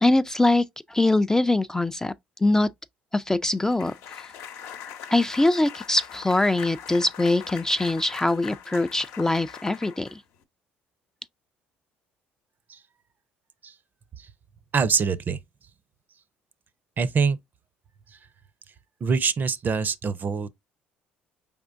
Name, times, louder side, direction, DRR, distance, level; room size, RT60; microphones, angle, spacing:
voice 1, 0.0-2.1 2.4-2.7 3.1-4.3 5.1-10.2, left 2 dB, 10° left, 0.3 m, -23 dB
sound 1, 3.7-10.4, left 8 dB, 70° left, 0.8 m, -41 dB
voice 2, 14.7-15.4 17.0-17.4 18.1-18.2 19.0-20.5, right 5 dB, 40° right, 0.5 m, -24 dB
4.8 x 3.5 x 2.5 m
supercardioid pair, 70°, 5 cm